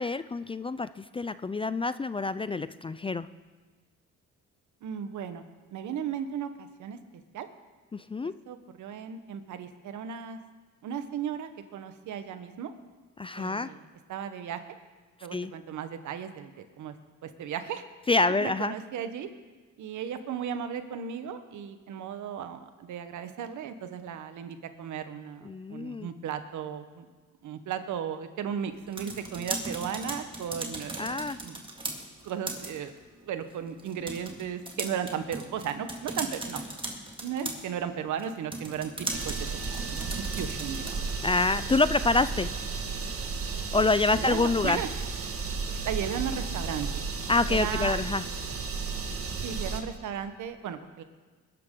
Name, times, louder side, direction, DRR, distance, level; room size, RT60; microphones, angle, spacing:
voice 1, 0.0-3.3 7.9-8.3 13.2-13.7 15.3-15.5 18.1-18.7 25.4-26.1 31.0-31.4 41.2-42.5 43.7-44.8 47.3-48.2, left 3 dB, 20° left, 14 dB, 0.3 m, -27 dB
voice 2, 4.8-5.4 5.7-7.0 7.3-7.5 8.5-10.4 10.8-12.7 13.4-13.8 14.1-14.6 15.2-16.9 17.2-17.8 18.4-19.3 19.8-27.1 27.4-31.7 32.2-32.9 33.2-36.6 37.2-38.9 39.2-41.1 44.1-44.9 45.7-47.0 47.5-48.0 49.4-51.0, right 8 dB, 75° right, 9 dB, 1.2 m, -35 dB
sound 1, 28.7-41.2, right 2 dB, 15° right, 2.1 m, -39 dB
sound 2, 39.1-49.8, right 4 dB, 50° right, 1.7 m, -33 dB
21.0 x 12.0 x 3.8 m, 1.4 s
cardioid pair, 90°, 30 cm